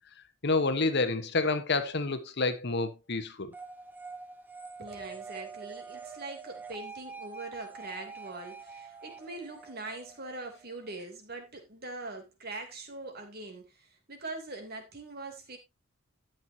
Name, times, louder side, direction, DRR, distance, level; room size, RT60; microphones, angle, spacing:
voice 1, 0.4-3.5, left 3 dB, 55° left, 1.1 m, -28 dB
sound 1, 3.5-11.0, right 5 dB, 10° right, 1.0 m, -46 dB
voice 2, 4.8-15.6, right 2 dB, 50° right, 2.9 m, -42 dB
12.0 x 9.2 x 2.7 m
head